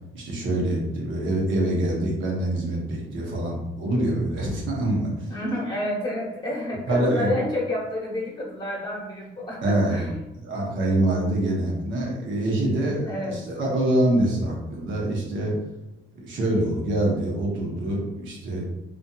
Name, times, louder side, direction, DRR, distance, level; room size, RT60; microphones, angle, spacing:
voice 1, 0.1-5.3 6.9-7.3 9.6-10.1 10.4-15.5 16.2-18.6, right 1 dB, 75° right, -2 dB, 0.9 m, -25 dB
voice 2, 5.3-10.1 13.1-13.7, left 1 dB, 20° left, -4 dB, 0.9 m, -29 dB
2.6 x 2.4 x 2.3 m, 0.94 s
cardioid pair, 90°, 20 cm